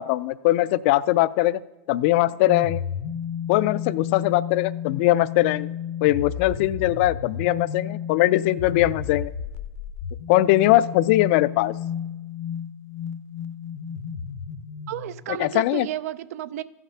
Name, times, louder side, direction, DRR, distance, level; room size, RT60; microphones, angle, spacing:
voice 1, 0.0-1.6 1.9-2.8 3.5-5.7 6.0-9.3 10.3-11.7 15.4-15.9, left 16 dB, 50° left, 17 dB, 0.4 m, -21 dB
sound 1, 2.4-15.3, left 8 dB, 75° left, 0.7 m, -32 dB
voice 2, 14.9-16.6, right 12 dB, 90° right, 17 dB, 0.5 m, -32 dB
14.0 x 5.9 x 5.5 m, 1.1 s
supercardioid pair, 170°, 8 cm